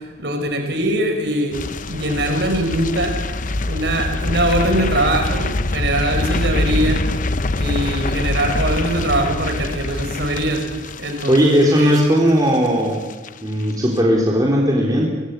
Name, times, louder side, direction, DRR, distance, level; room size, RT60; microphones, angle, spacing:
voice 1, 0.2-1.6 1.9-3.2 3.7-7.0 7.6-10.7 11.0-12.0, right 1 dB, 70° right, 5 dB, 4.9 m, -22 dB
sound 1, 1.5-12.7 12.9-13.3 13.6-13.7, left 2 dB, 45° left, 0.8 m, -24 dB
voice 2, 11.3-13.0 13.4-15.1, equal, 20° right, -3 dB, 4.0 m, -17 dB
24.5 x 22.0 x 8.4 m, 1.2 s
head